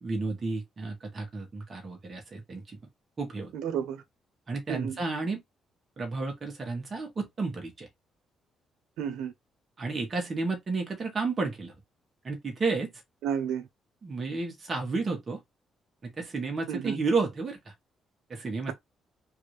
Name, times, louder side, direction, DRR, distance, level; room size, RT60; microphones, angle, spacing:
voice 1, 0.0-2.8 3.2-3.5 4.5-5.4 6.0-7.9 9.8-11.7 12.2-12.9 14.0-15.4 16.0-17.7 18.3-18.7, right 3 dB, 40° right, 1.5 m, -32 dB
voice 2, 3.5-4.0 4.7-5.0 9.0-9.3 13.2-13.7 16.7-17.0, right 8 dB, 90° right, 0.6 m, -31 dB
3.2 x 2.7 x 3.2 m
cardioid pair, 90°, 0 cm